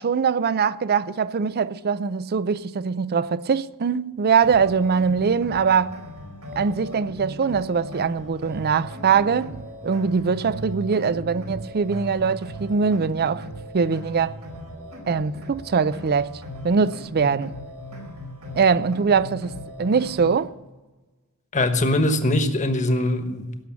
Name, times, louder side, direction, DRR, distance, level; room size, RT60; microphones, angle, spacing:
voice 1, 0.0-6.0 6.6-13.5 13.7-14.4 15.1-16.3 16.6-17.5 18.5-19.5 19.8-20.5, right 5 dB, 45° right, 0.5 m, -22 dB
sound 1, 4.4-20.4, equal, 85° right, 4.8 m, -38 dB
voice 2, 21.5-23.6, left 1 dB, 35° left, 1.3 m, -22 dB
17.0 x 7.1 x 8.8 m
head